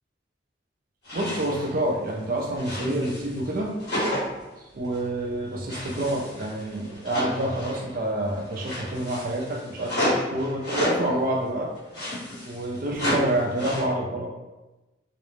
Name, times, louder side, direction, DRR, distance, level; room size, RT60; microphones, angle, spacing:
sound 1, 1.0-1.7 2.1-3.5 3.8-4.4 4.8-5.1 5.7-8.0 8.3-11.1 11.8-13.8, equal, 55° left, 1.2 m, -31 dB
voice 1, 1.1-3.7 4.6-11.7 12.5-14.3, right 1 dB, 45° right, -1 dB, 0.4 m, -28 dB
2.4 x 2.1 x 3.1 m, 1.1 s
head